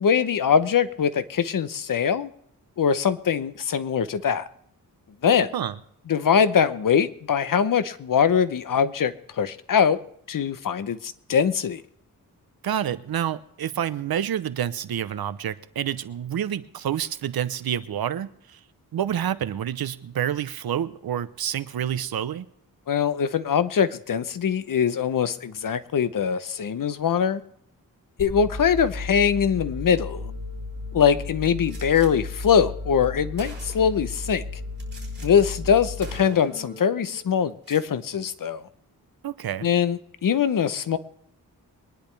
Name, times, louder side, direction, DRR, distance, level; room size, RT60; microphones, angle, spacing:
voice 1, 0.0-2.3 2.8-4.4 5.2-5.5 6.1-10.0 10.3-11.8 22.9-27.4 28.2-30.3 30.9-34.4 35.2-38.6 39.6-41.0, left 7 dB, 65° left, 14 dB, 0.8 m, -22 dB
voice 2, 12.6-18.6 18.9-22.5 39.2-39.7, right 10 dB, 80° right, 14 dB, 0.8 m, -28 dB
sound 1, 28.2-37.2, left 3 dB, 80° left, 6.1 m, -35 dB
Gunshot gunfire, 31.7-32.1 32.9-33.0 33.4-34.1 34.8-35.3 35.6-35.8 36.0-36.7 37.5-37.9, right 3 dB, 30° right, 4.4 m, -45 dB
23.0 x 10.5 x 3.3 m, 0.70 s
wide cardioid pair, 105°, 36 cm